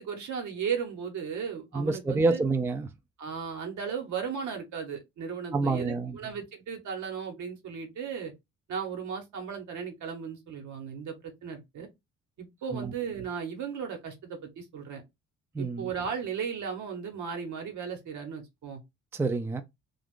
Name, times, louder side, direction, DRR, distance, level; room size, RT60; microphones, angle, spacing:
voice 1, 0.0-2.4 3.2-8.3 8.7-11.9 12.4-15.0 15.6-18.8, right 6 dB, 75° right, 1.1 m, -36 dB
voice 2, 1.7-2.9 5.5-6.2 12.7-12.9 15.5-15.9 19.1-19.6, right 3 dB, 10° right, 0.4 m, -27 dB
2.4 x 2.4 x 3.6 m
cardioid pair, 90°, 30 cm